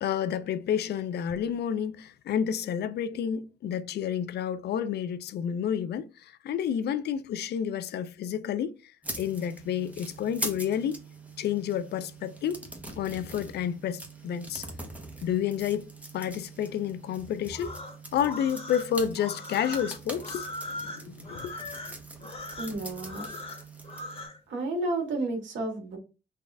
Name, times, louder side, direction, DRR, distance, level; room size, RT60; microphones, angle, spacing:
voice 1, 0.0-8.9 9.2-11.0 11.4-12.6 13.0-14.7 15.2-17.7 18.1-21.5 23.2-23.4, left 9 dB, 55° left, 0.4 m, -30 dB
sound 1, 9.0-24.3, right 2 dB, 5° right, 0.9 m, -42 dB
sound 2, 17.5-24.4, left 2 dB, 30° left, 1.2 m, -40 dB
voice 2, 22.6-23.3 24.5-26.0, right 2 dB, 70° right, 1.6 m, -31 dB
4.1 x 2.4 x 3.3 m
cardioid pair, 90°, 20 cm